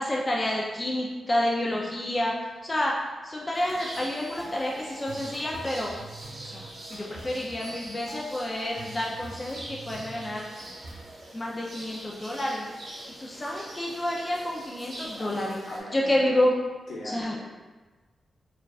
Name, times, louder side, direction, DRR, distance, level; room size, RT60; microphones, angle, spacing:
voice 1, 0.0-2.3 2.6-2.9 3.2-5.9 6.5-6.6 6.9-10.5 11.3-12.7 13.2-15.6 15.9-16.6 17.1-17.3, left 1 dB, 20° left, -3 dB, 0.4 m, -29 dB
sound 1, 3.5-15.8, right 1 dB, 60° right, 0.9 m, -44 dB
sound 2, 3.7-11.1, right 1 dB, 90° right, 0.9 m, -45 dB
voice 2, 15.2-16.5 16.9-17.5, left 1 dB, 80° left, -6 dB, 1.0 m, -41 dB
4.6 x 2.3 x 2.3 m, 1.3 s
wide cardioid pair, 110°, 0 cm